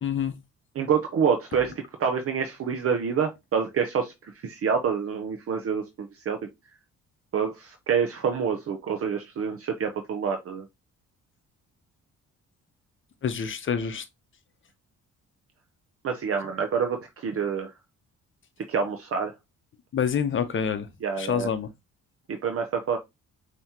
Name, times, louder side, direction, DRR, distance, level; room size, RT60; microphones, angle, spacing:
voice 1, 0.0-0.3 13.2-14.0 19.9-20.9 21.2-21.7, left 7 dB, 40° left, 0.8 m, -27 dB
voice 2, 0.8-1.7 2.0-4.1 4.4-6.4 7.3-10.6 16.0-17.0 17.2-17.7 18.7-19.3 21.0-21.5 22.3-23.0, right 6 dB, 50° right, 0.7 m, -27 dB
5.5 x 3.0 x 2.8 m
cardioid pair, 90°, 30 cm